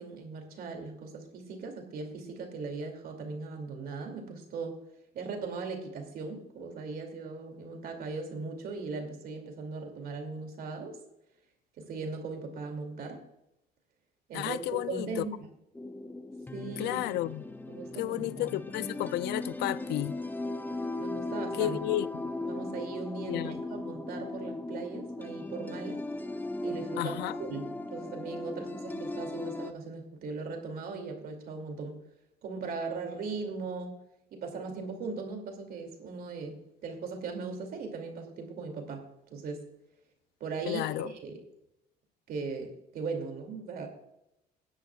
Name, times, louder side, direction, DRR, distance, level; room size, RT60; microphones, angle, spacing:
voice 1, 0.0-4.8 5.1-11.0 11.8-13.2 14.3-15.5 16.5-17.0 17.7-18.6 21.0-21.8 22.4-26.0 26.6-31.9 32.4-34.0 34.3-36.6 36.8-39.7 40.4-41.4 42.3-43.9, right 4 dB, 60° right, 2.6 m, -38 dB
voice 2, 14.3-15.2 16.8-17.5 18.0-20.2 21.6-22.3 23.3-23.6 27.0-27.4 40.7-41.1, left 15 dB, 80° left, 0.5 m, -32 dB
sound 1, 15.7-29.7, left 2 dB, 10° left, 0.7 m, -38 dB
18.0 x 10.5 x 2.4 m
cardioid pair, 110°, 17 cm